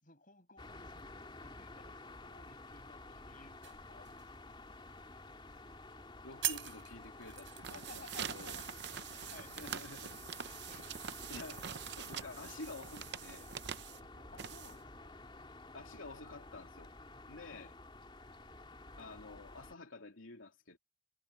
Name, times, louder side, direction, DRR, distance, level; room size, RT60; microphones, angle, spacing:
voice 1, 0.0-4.5 7.7-8.6 9.1-9.8 10.1-10.9 14.3-15.1 17.5-17.7, left 3 dB, 45° left, 7.3 m, -58 dB
sound 1, 0.6-19.8, left 2 dB, 25° left, 3.1 m, -52 dB
sound 2, 3.6-4.9 5.2-5.6 6.0-6.1 6.4-11.8 12.3-12.5, right 11 dB, 75° right, 3.6 m, -45 dB
voice 2, 6.2-8.6 9.5-10.2 11.3-13.5 15.7-16.9 17.3-17.7 19.0-20.8, left 3 dB, 90° left, 3.2 m, -50 dB
sound 3, 7.5-15.0, right 8 dB, 55° right, 0.7 m, -45 dB
head